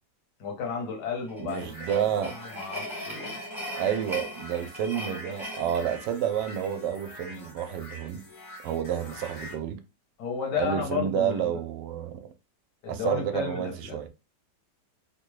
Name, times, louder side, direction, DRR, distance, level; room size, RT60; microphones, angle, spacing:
voice 1, 0.4-1.7 2.2-3.4 10.2-11.6 12.8-14.0, left 6 dB, 75° left, 1.5 m, -33 dB
sound 1, 1.2-6.7, equal, ahead, 0.8 m, -39 dB
voice 2, 1.4-2.3 3.7-8.2 8.6-9.8 10.5-12.3 12.9-14.1, right 9 dB, 80° right, 1.2 m, -30 dB
sound 2, 1.5-9.6, left 1 dB, 50° left, 1.0 m, -46 dB
3.5 x 2.1 x 3.1 m
omnidirectional pair, 1.9 m